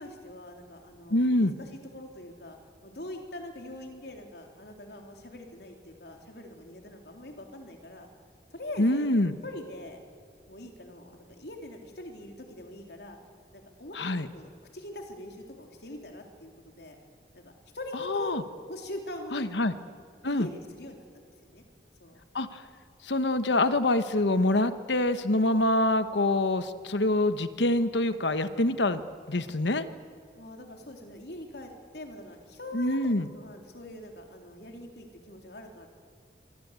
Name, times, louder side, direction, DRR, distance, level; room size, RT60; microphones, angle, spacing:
voice 1, 0.0-8.1 8.5-10.0 10.5-13.2 13.5-17.0 17.3-18.4 18.7-19.5 20.3-21.6 22.0-22.2 30.4-35.9, left 1 dB, 70° left, 3 dB, 3.7 m, -43 dB
voice 2, 1.1-1.5 8.8-9.3 13.9-14.3 18.0-18.4 19.3-19.8 20.2-20.5 22.3-22.6 23.0-29.0 29.3-29.9 32.7-33.3, left 1 dB, 90° left, 11 dB, 1.2 m, -25 dB
26.0 x 25.0 x 8.3 m, 2.1 s
head